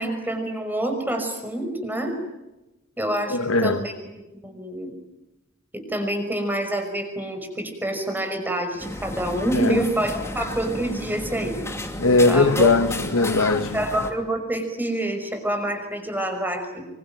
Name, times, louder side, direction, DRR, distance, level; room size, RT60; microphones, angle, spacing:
voice 1, 0.0-2.2 3.0-3.9 4.3-4.9 5.7-11.6 12.3-12.7 13.7-16.9, right 1 dB, 10° right, 5.8 m, -27 dB
voice 2, 3.3-3.8 9.5-9.8 12.0-13.8, left 3 dB, 70° left, 1.3 m, -19 dB
sound 1, 8.8-14.1, left 1 dB, 15° left, 2.6 m, -32 dB
26.5 x 24.5 x 9.2 m
head